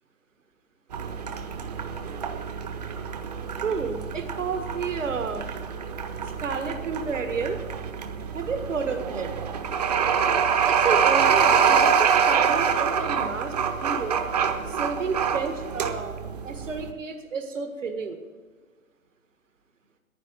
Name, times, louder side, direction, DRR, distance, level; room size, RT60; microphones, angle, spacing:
sound 1, 0.9-16.9, right 7 dB, 30° right, 0.9 m, -25 dB
voice 1, 3.6-5.5 6.4-7.6 8.3-9.3 10.7-13.5 13.8-14.2 14.7-16.2 16.4-18.2, right 5 dB, 60° right, 6 dB, 1.8 m, -31 dB
10.5 x 10.0 x 9.1 m, 1.4 s
figure-of-eight pair, 135°, 42 cm